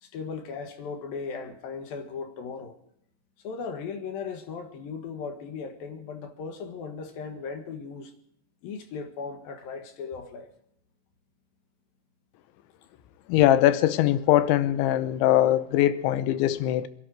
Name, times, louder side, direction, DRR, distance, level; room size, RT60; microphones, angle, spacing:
voice 1, 0.0-2.8 3.4-8.1 8.6-10.5, left 5 dB, 65° left, 2.8 m, -37 dB
voice 2, 13.3-16.9, left 13 dB, 85° left, 3.1 m, -21 dB
25.0 x 11.5 x 4.7 m
omnidirectional pair, 5.3 m